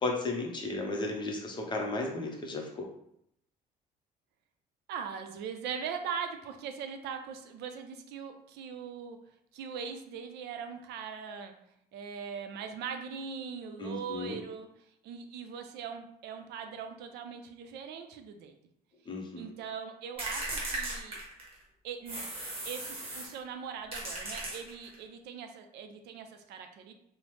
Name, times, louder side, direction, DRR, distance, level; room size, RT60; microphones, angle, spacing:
voice 1, 0.0-2.9 13.8-14.4 19.1-19.5, left 2 dB, 30° left, 1 dB, 0.6 m, -34 dB
voice 2, 4.9-9.2 9.5-11.5 11.9-18.6 19.3-21.2 21.8-22.2 22.6-26.9, right 6 dB, 80° right, 6 dB, 0.4 m, -41 dB
sound 1, 20.2-21.6 22.1-23.4 23.9-25.0, right 2 dB, 35° right, 1.0 m, -37 dB
2.9 x 2.0 x 3.1 m, 0.74 s
cardioid pair, 110°, 17 cm